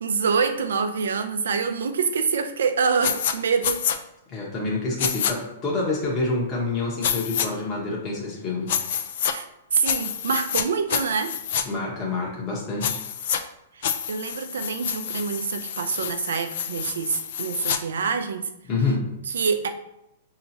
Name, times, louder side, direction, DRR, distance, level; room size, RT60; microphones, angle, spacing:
voice 1, 0.0-3.9 9.3-9.5 9.7-11.3 13.8-18.5 19.3-19.7, right 5 dB, 85° right, 7 dB, 0.5 m, -26 dB
sound 1, 3.0-3.3 3.6-4.0 5.0-5.3 7.0-7.5 8.7-9.3 9.8-10.6 10.9-11.6 12.8-13.4 13.8-17.8, left 8 dB, 60° left, 0.4 m, -27 dB
voice 2, 4.3-8.7 11.6-13.0 18.7-19.1, left 3 dB, 25° left, -4 dB, 1.0 m, -27 dB
5.4 x 2.8 x 2.8 m, 0.85 s
hypercardioid pair, 150°, 0 cm